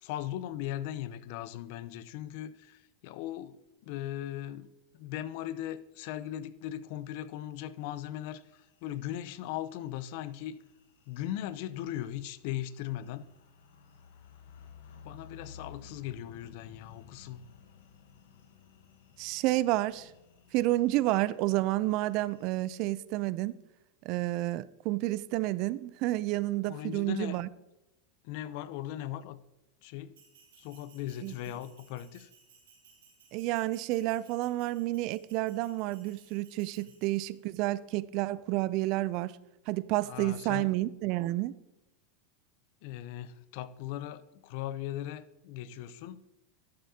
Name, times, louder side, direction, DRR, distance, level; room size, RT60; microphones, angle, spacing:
voice 1, 0.0-10.6 11.1-13.2 15.0-17.4 26.7-27.4 28.2-29.4 29.8-30.2 30.6-32.3 40.0-40.7 42.8-46.2, left 12 dB, 60° left, 0.6 m, -38 dB
sound 1, 8.3-22.9, left 7 dB, 75° left, 1.1 m, -56 dB
voice 2, 19.2-20.1 20.5-23.5 24.0-27.5 31.2-31.4 33.3-39.4 39.7-41.5, right 17 dB, 55° right, 0.4 m, -30 dB
Bell, 30.1-37.6, right 6 dB, 90° right, 2.5 m, -61 dB
11.5 x 7.6 x 2.8 m
hypercardioid pair, 115°, 0 cm